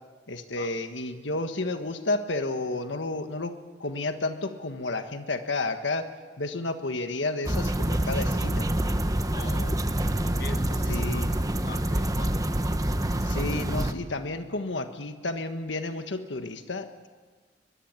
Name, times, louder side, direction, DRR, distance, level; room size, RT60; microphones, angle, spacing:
voice 1, 0.3-3.5 3.8-6.1 6.4-8.7 9.4-9.5 10.9-11.3 13.2-17.1, left 2 dB, 85° left, 7 dB, 1.5 m, -31 dB
sound 1, 7.4-13.9, right 1 dB, 20° right, 1.1 m, -26 dB
voice 2, 9.3-9.9 10.2-12.4, left 3 dB, 60° left, 7 dB, 1.5 m, -42 dB
23.0 x 22.5 x 9.0 m, 1.4 s
head